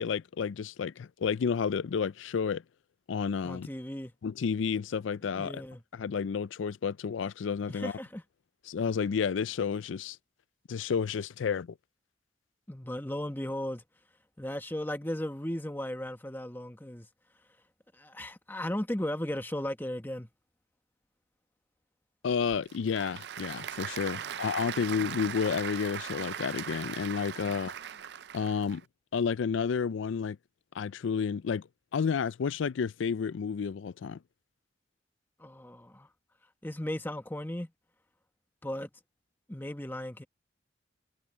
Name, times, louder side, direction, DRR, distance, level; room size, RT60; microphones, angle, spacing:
voice 1, 0.0-2.6 3.1-3.7 4.2-5.6 5.9-7.9 8.7-10.2 10.7-11.7 22.2-27.7 28.3-28.8 29.1-30.4 30.8-31.7 31.9-34.2, left 6 dB, 90° left, 0.4 m, -31 dB
voice 2, 3.4-4.1 5.3-5.8 7.7-8.2 12.7-13.8 14.4-17.1 17.9-20.3 24.1-24.4 35.4-36.1 36.6-37.7 38.6-38.9 39.5-40.3, left 1 dB, 10° left, 1.3 m, -36 dB
Applause / Crowd, 22.3-28.8, right 8 dB, 60° right, 0.4 m, -39 dB
head